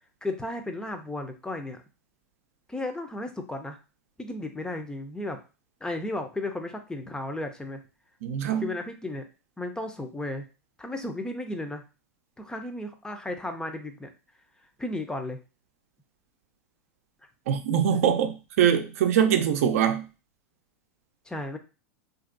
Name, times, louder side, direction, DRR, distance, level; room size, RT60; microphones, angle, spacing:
voice 1, 0.2-1.8 2.7-3.8 4.2-5.4 5.8-7.8 8.6-9.2 9.6-10.4 10.8-11.8 12.4-14.1 14.8-15.4 21.3-21.6, left 2 dB, 10° left, 0.6 m, -34 dB
voice 2, 8.2-8.7 17.5-20.1, right 8 dB, 70° right, 0.6 m, -23 dB
2.8 x 2.6 x 2.5 m
hypercardioid pair, 100°, 8 cm